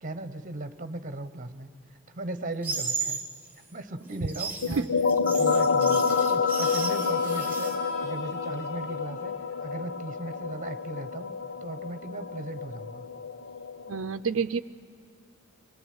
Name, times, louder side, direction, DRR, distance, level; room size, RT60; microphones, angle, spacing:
voice 1, 0.0-3.2 3.7-4.9 5.2-9.3 9.6-11.3 11.6-13.0, right 2 dB, 40° right, 12 dB, 1.2 m, -37 dB
sound 1, 2.6-3.3 4.1-7.8, right 5 dB, 10° right, 3.0 m, -34 dB
sound 2, 4.6-14.0, left 5 dB, 90° left, 1.0 m, -28 dB
Harmonica, 6.6-11.9, right 1 dB, 35° left, 4.4 m, -46 dB
voice 2, 13.9-14.6, right 5 dB, 75° right, 8 dB, 0.6 m, -28 dB
25.5 x 19.5 x 9.6 m, 2.3 s
head